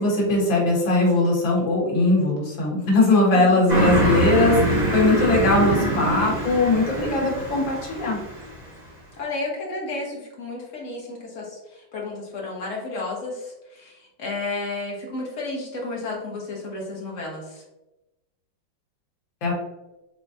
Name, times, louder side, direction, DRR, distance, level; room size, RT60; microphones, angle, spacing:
voice 1, 0.0-8.2 19.4-19.5, left 2 dB, 85° left, -3 dB, 2.1 m, -20 dB
Car passing by, 3.7-8.6, right 1 dB, 25° right, 1.3 m, -24 dB
voice 2, 9.2-17.6, left 2 dB, 45° left, -2 dB, 1.3 m, -32 dB
4.6 x 3.8 x 2.7 m, 0.98 s
omnidirectional pair, 2.1 m